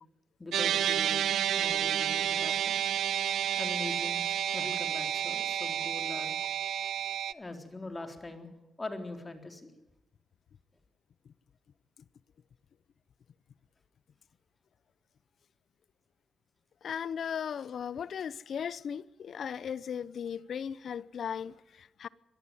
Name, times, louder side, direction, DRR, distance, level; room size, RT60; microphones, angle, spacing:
voice 1, 0.4-1.3 1.6-2.8 3.6-6.4 7.3-8.5 8.8-9.7, left 2 dB, 25° left, 3.9 m, -42 dB
sound 1, 0.5-7.3, right 10 dB, 80° right, 0.7 m, -30 dB
voice 2, 16.8-22.1, left 7 dB, 65° left, 0.7 m, -37 dB
23.0 x 14.0 x 9.3 m
cardioid pair, 70°, 0 cm